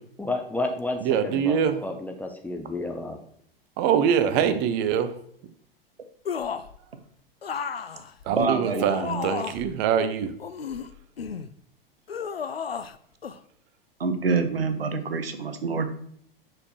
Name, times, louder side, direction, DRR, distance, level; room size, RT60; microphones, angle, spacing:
voice 1, 0.2-3.2 4.2-4.3, left 2 dB, 5° left, 4 dB, 0.6 m, -31 dB
voice 2, 1.0-1.8 3.8-5.1 8.3-10.3, right 8 dB, 35° right, 10 dB, 0.7 m, -24 dB
sound 1, 6.3-6.8 7.4-9.7 10.4-11.5 12.1-13.0 13.2-13.4, left 6 dB, 85° left, 0.4 m, -33 dB
voice 3, 8.3-9.3 14.0-15.9, right 4 dB, 80° right, 9 dB, 0.8 m, -26 dB
7.8 x 6.0 x 3.0 m, 0.65 s
figure-of-eight pair, 90°, 29 cm